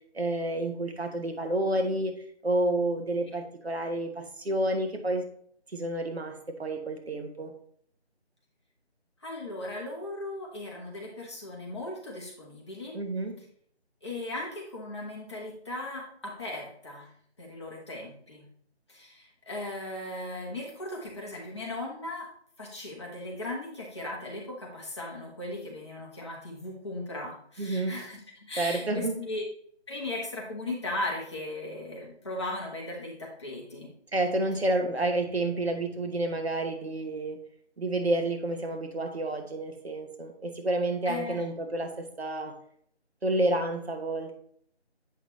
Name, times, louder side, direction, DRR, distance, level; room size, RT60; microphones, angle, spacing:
voice 1, 0.1-2.1 2.4-5.3 5.7-7.5 12.9-13.4 27.6-28.0 28.6-29.2 34.1-37.4 37.8-42.6 43.2-44.3, right 1 dB, 65° right, 6 dB, 1.3 m, -29 dB
voice 2, 9.2-13.0 14.0-17.1 17.4-18.5 18.9-22.3 22.6-29.4 29.9-33.9 41.0-41.4, left 2 dB, 25° left, -3 dB, 1.4 m, -37 dB
8.2 x 5.7 x 3.0 m, 0.63 s
figure-of-eight pair, 170°, 34 cm